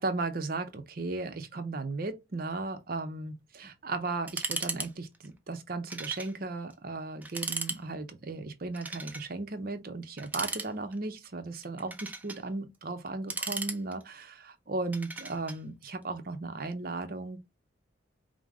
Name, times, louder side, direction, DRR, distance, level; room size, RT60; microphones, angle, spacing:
voice 1, 0.0-17.4, right 3 dB, 50° right, 0.6 m, -36 dB
sound 1, 4.3-4.9 5.1-5.3 5.9-6.3 6.7-6.8 7.2-7.8 8.7-9.3 10.2-11.0 11.6-12.4 13.1-14.2 14.9-15.6, right 3 dB, 10° right, 0.4 m, -36 dB
4.9 x 2.0 x 3.5 m
head